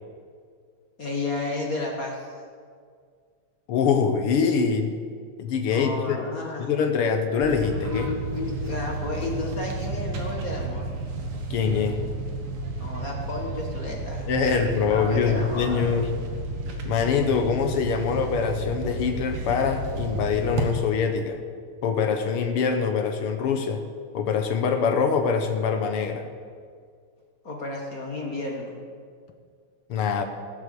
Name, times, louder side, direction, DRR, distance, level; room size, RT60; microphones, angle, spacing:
voice 1, 1.0-2.3 5.7-6.7 7.9-8.1 8.3-10.9 12.8-16.0 27.4-28.7, left 2 dB, 40° left, 0 dB, 1.3 m, -32 dB
voice 2, 3.7-4.9 5.4-6.2 6.6-8.1 11.5-12.0 14.3-16.1 16.8-21.4 21.8-23.8 24.1-26.3 29.9-30.2, left 6 dB, 65° left, 6 dB, 1.5 m, -24 dB
sound 1, 7.4-20.7, right 2 dB, 55° right, 2.0 m, -32 dB
17.5 x 7.6 x 6.9 m, 2.1 s
omnidirectional pair, 3.4 m